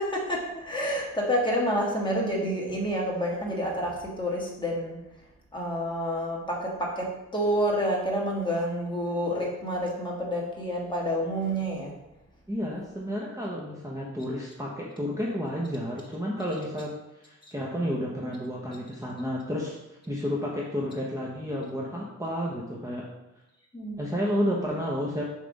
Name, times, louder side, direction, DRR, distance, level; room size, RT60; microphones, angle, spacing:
voice 1, 0.0-5.0 5.5-11.9 23.7-24.0, equal, 15° left, -3 dB, 1.5 m, -28 dB
voice 2, 12.5-16.9 17.2-23.1 24.0-25.2, equal, 10° right, -4 dB, 0.9 m, -31 dB
6.9 x 3.4 x 5.2 m, 0.89 s
wide cardioid pair, 140°, 30 cm